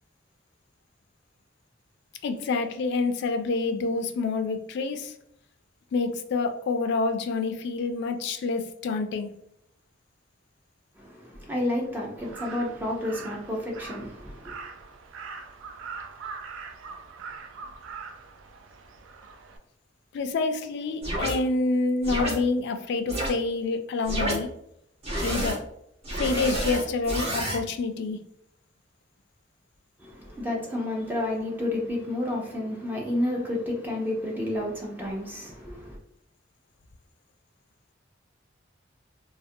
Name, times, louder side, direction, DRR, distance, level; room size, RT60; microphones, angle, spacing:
voice 1, 2.2-5.1 5.9-9.3 20.1-24.5 25.2-25.6 26.2-28.2, left 3 dB, 60° left, 0.3 m, -27 dB
voice 2, 11.0-14.5 30.0-36.0, left 1 dB, 10° right, 0.4 m, -30 dB
Crow, 12.2-19.6, right 5 dB, 90° right, 0.3 m, -42 dB
sound 1, 21.0-21.3 22.0-22.3 23.1-23.3 24.0-24.4 25.0-25.6 26.0-27.6, right 1 dB, 35° right, 0.8 m, -29 dB
2.4 x 2.1 x 2.6 m
head